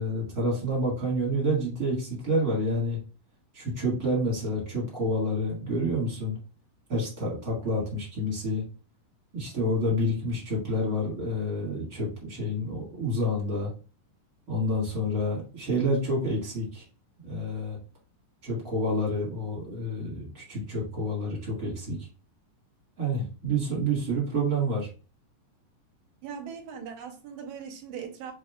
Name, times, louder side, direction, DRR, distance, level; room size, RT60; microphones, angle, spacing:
voice 1, 0.0-3.0 3.5-6.4 6.9-8.6 9.3-13.7 14.5-16.8 17.2-17.8 18.4-22.0 23.0-24.9, equal, 30° right, -3 dB, 2.0 m, -28 dB
voice 2, 26.2-28.3, right 7 dB, 70° right, 2 dB, 2.2 m, -39 dB
5.4 x 4.1 x 2.3 m, 0.35 s
omnidirectional pair, 3.7 m